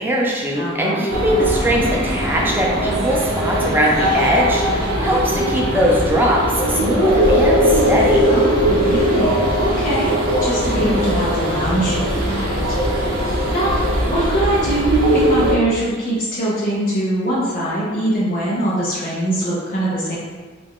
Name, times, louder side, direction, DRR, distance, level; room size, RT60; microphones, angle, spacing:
voice 1, 0.0-6.4 6.7-8.2 10.7-11.0, equal, 10° right, -3 dB, 0.6 m, -20 dB
voice 2, 0.5-1.0 8.3-12.8 13.1-13.8 14.1-20.2, right 1 dB, 45° left, -7 dB, 0.6 m, -23 dB
sound 1, 1.1-15.6, equal, 45° right, 0.7 m, -19 dB
3.3 x 2.5 x 3.5 m, 1.4 s
head